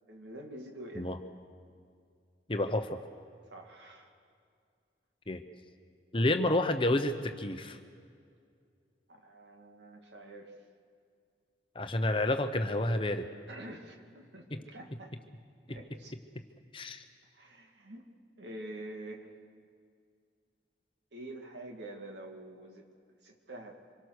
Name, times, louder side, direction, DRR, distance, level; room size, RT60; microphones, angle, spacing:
voice 1, 0.1-1.1 3.5-4.1 9.1-10.5 13.5-15.2 15.7-16.1 17.3-18.1 18.4-19.3 21.1-22.9 23.2-23.8, right 1 dB, 80° right, 3 dB, 2.3 m, -46 dB
voice 2, 2.5-3.0 5.3-5.4 6.1-7.8 11.7-13.3 14.5-14.6 14.9-15.0 15.7-15.8 16.3-16.4 16.7-17.0, left 1 dB, 30° left, 7 dB, 0.9 m, -30 dB
25.5 x 22.5 x 6.6 m, 2.2 s
head